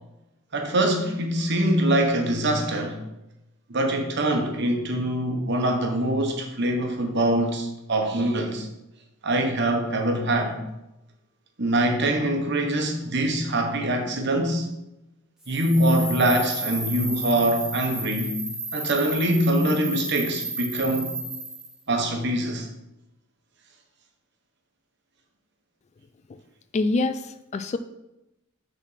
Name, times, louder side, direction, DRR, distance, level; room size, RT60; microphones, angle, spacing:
voice 1, 0.5-3.0 3.7-8.7 9.2-10.6 11.6-14.7 15.5-18.4 18.7-21.2 21.9-22.7, right 1 dB, 50° right, 3 dB, 1.2 m, -24 dB
sound 1, 15.4-21.7, right 2 dB, ahead, 1.3 m, -33 dB
voice 2, 26.7-27.8, left 3 dB, 30° left, 10 dB, 0.3 m, -25 dB
6.9 x 4.1 x 5.7 m, 0.92 s
head